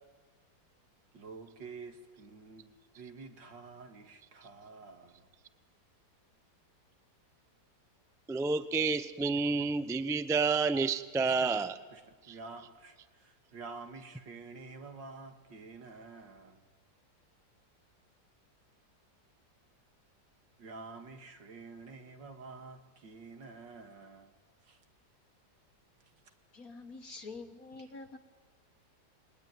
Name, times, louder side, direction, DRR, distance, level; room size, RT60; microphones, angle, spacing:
voice 1, 1.1-5.3 11.2-11.6 11.9-16.6 20.6-24.3 24.6-24.8 26.0-26.1 27.8-27.9, right 4 dB, 75° right, 6 dB, 2.7 m, -49 dB
voice 2, 8.3-11.7 12.3-12.4, right 4 dB, 5° right, 12 dB, 0.3 m, -29 dB
voice 3, 26.5-28.2, left 3 dB, 50° left, 5 dB, 1.8 m, -46 dB
29.0 x 22.0 x 9.4 m, 1.4 s
omnidirectional pair, 2.0 m